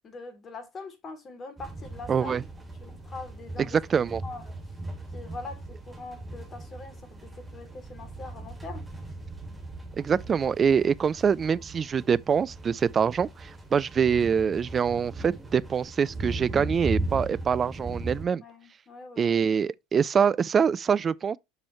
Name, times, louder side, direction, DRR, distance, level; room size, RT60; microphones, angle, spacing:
voice 1, 0.0-2.3 2.8-3.8 4.2-4.5 5.1-8.9 18.4-19.4, left 3 dB, 30° left, 3.0 m, -42 dB
sound 1, 1.6-18.3, right 2 dB, 15° right, 2.8 m, -38 dB
voice 2, 2.1-2.4 3.6-4.2 10.0-18.4 19.2-21.4, right 7 dB, 30° right, 0.4 m, -25 dB
8.0 x 6.1 x 3.1 m
figure-of-eight pair, 70°, 0 cm